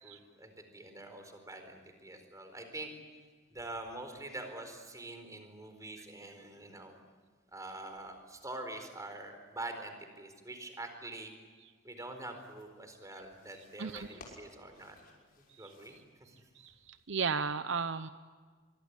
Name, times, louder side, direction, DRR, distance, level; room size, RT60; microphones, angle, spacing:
voice 1, 0.0-2.9 3.5-7.0 7.5-11.3 11.8-15.0 15.6-16.0, right 2 dB, 15° right, 6 dB, 4.4 m, -45 dB
sound 1, 12.2-17.1, left 2 dB, 50° left, 6.1 m, -59 dB
voice 2, 16.6-18.1, right 5 dB, 65° right, 11 dB, 0.8 m, -35 dB
24.0 x 23.5 x 9.9 m, 1.5 s
head